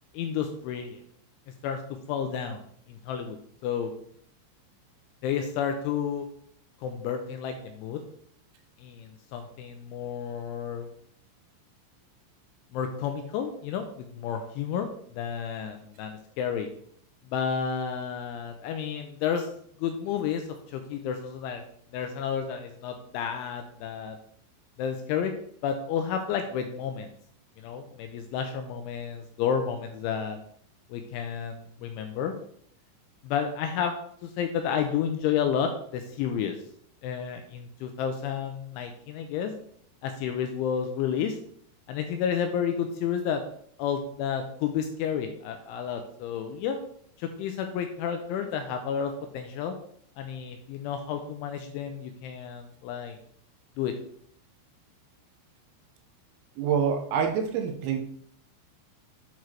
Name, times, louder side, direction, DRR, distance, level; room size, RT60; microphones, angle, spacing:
voice 1, 0.1-1.0 1.6-1.8 2.1-2.6 2.9-3.4 3.6-3.9 5.2-6.3 6.8-8.0 8.8-10.9 12.7-16.7 17.3-19.5 19.8-20.4 20.7-21.7 21.9-24.2 24.8-25.3 25.6-27.1 27.6-30.4 30.9-32.3 33.2-34.0 34.2-36.6 37.0-39.5 40.0-41.4 41.9-43.4 43.8-46.8 47.2-49.7 50.2-53.2 53.8-53.9, left 8 dB, 85° left, 6 dB, 2.8 m, -31 dB
voice 2, 56.6-58.0, right 7 dB, 85° right, 3 dB, 3.7 m, -26 dB
9.4 x 4.8 x 4.4 m, 0.63 s
omnidirectional pair, 6.0 m